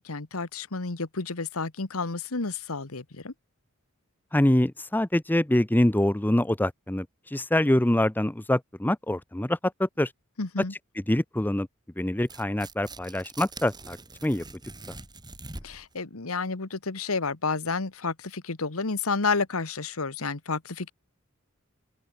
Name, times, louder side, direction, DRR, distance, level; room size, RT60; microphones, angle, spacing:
voice 1, 0.0-3.3 10.4-10.7 15.6-20.9, left 4 dB, 80° left, 1.6 m, -30 dB
voice 2, 4.3-7.1 7.3-10.1 11.1-11.7 12.0-14.0 14.2-14.4, left 1 dB, 10° left, 0.6 m, -25 dB
Tearing, 12.2-15.9, right 3 dB, 20° right, 4.0 m, -44 dB
head